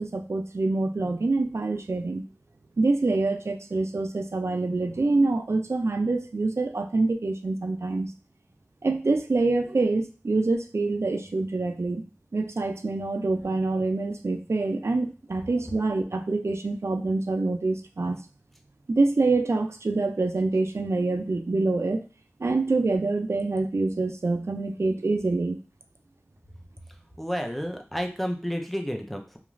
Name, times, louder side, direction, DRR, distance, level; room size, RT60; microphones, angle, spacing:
voice 1, 0.0-2.2 2.8-8.1 8.8-12.0 12.3-18.2 18.9-22.0 22.4-25.6, right 3 dB, 65° right, 7 dB, 0.4 m, -26 dB
voice 2, 27.2-29.4, equal, 5° left, 4 dB, 0.5 m, -31 dB
2.4 x 2.3 x 3.1 m, 0.35 s
wide cardioid pair, 45°, 5 cm